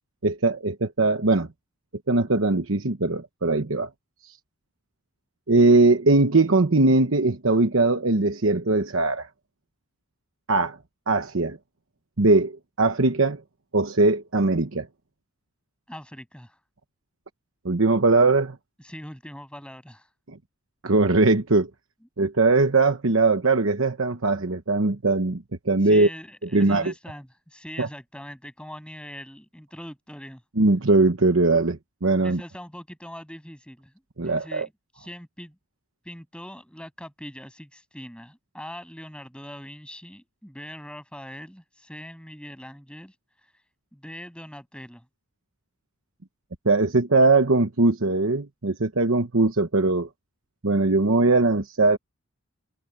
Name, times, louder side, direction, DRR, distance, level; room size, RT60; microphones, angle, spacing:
voice 1, 0.2-1.5 2.1-3.9 4.2-4.4 5.5-9.3 10.5-10.8 11.1-11.6 12.2-13.4 13.7-14.9 17.6-18.6 20.3-20.4 20.8-21.7 22.2-26.1 26.5-26.9 27.8-27.9 30.6-32.4 34.2-34.7 46.6-50.1 50.6-52.0, right 3 dB, 65° right, 1.1 m, -20 dB
voice 2, 15.9-16.6 18.8-20.1 25.8-30.4 32.2-33.9 34.2-35.6 36.0-43.1 43.9-45.1, equal, 5° left, 7.8 m, -42 dB
head